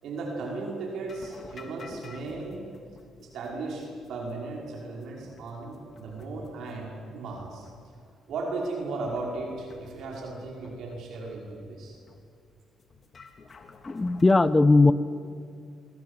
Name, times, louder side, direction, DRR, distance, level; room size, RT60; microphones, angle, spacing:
voice 1, 0.0-2.6 3.2-7.7 8.3-12.0, right 3 dB, 75° right, -1 dB, 5.5 m, -36 dB
sound 1, 1.0-14.2, left 4 dB, 40° left, 3.2 m, -52 dB
voice 2, 13.9-14.9, left 3 dB, 20° left, 15 dB, 1.1 m, -18 dB
25.5 x 23.5 x 8.4 m, 2.3 s
cardioid pair, 90°, 0 cm